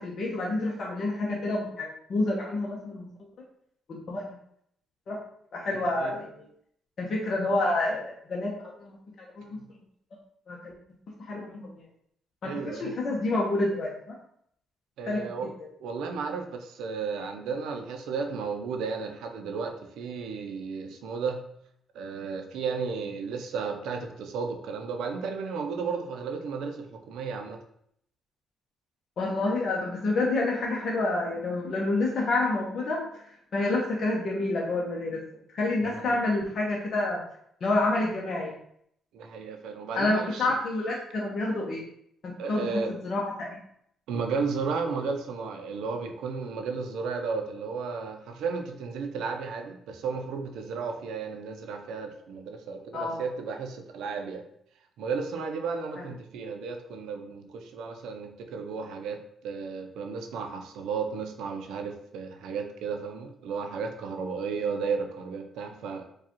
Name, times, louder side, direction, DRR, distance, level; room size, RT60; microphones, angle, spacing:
voice 1, 0.0-3.1 3.9-4.4 5.1-5.2 5.5-6.3 7.0-9.6 10.5-10.7 11.2-11.8 12.4-14.2 15.1-15.2 29.2-33.2 33.5-35.2 35.5-37.2 37.6-38.5 39.9-41.8 42.2-43.6 52.9-53.2 56.0-56.1, left 2 dB, 55° left, -3 dB, 0.7 m, -28 dB
voice 2, 5.8-6.1 12.4-13.0 15.0-15.5 15.8-21.4 21.9-27.6 36.0-36.2 39.1-40.5 42.4-42.9 44.1-54.4 55.0-66.0, right 5 dB, 85° right, 5 dB, 0.5 m, -33 dB
4.6 x 2.3 x 3.0 m, 0.71 s
cardioid pair, 90°, 0 cm